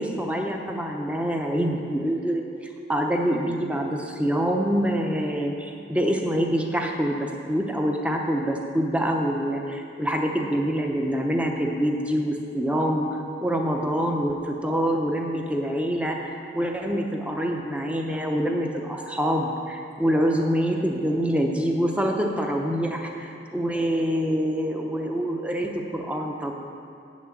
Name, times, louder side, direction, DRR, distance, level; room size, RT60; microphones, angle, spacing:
voice 1, 0.0-2.4 2.9-16.3 16.5-26.5, equal, 5° right, 1 dB, 0.7 m, -25 dB
8.5 x 6.2 x 7.2 m, 2.6 s
head